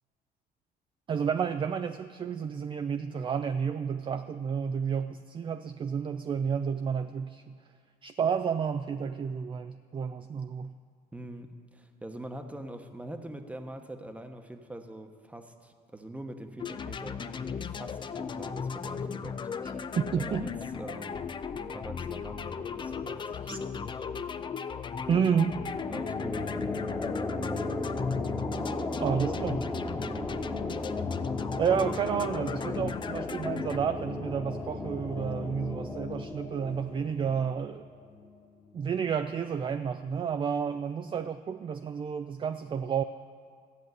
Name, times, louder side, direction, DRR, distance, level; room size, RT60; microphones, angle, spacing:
voice 1, 1.1-7.6 8.0-10.7 20.0-20.5 23.5-23.6 25.1-25.6 29.0-29.7 31.6-37.9 38.7-43.0, right 7 dB, 30° right, 9 dB, 0.4 m, -30 dB
voice 2, 11.1-19.9 20.2-21.2 21.6-24.1 25.9-26.9 30.0-30.5, right 1 dB, 10° right, 6 dB, 1.0 m, -44 dB
sound 1, 16.6-33.8, left 6 dB, 30° left, 0.5 m, -36 dB
sound 2, 25.4-38.8, left 2 dB, 10° left, 1.3 m, -36 dB
14.5 x 6.2 x 9.4 m, 2.1 s
cardioid pair, 110°, 17 cm